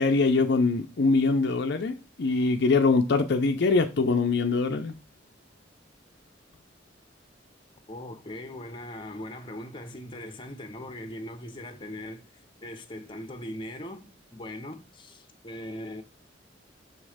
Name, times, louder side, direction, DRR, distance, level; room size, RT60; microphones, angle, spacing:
voice 1, 0.0-5.0, left 3 dB, 60° left, 0.6 m, -23 dB
voice 2, 7.9-16.0, left 1 dB, 25° left, 0.8 m, -40 dB
6.5 x 3.1 x 4.9 m
head